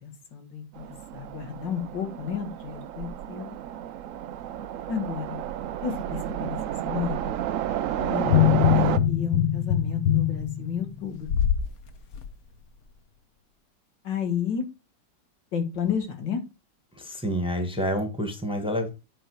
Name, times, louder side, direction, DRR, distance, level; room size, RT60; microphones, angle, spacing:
voice 1, 0.0-3.6 4.9-5.4 5.8-6.6 6.8-7.3 8.0-11.3 14.0-14.7 15.5-16.4, left 7 dB, 80° left, 2.3 m, -32 dB
Train, 0.8-9.0, right 11 dB, 75° right, 0.7 m, -31 dB
sound 1, 8.2-11.7 12.1-12.3, left 10 dB, 60° left, 1.3 m, -22 dB
voice 2, 17.0-18.9, equal, 5° right, 1.3 m, -28 dB
8.9 x 4.7 x 4.7 m
omnidirectional pair, 1.9 m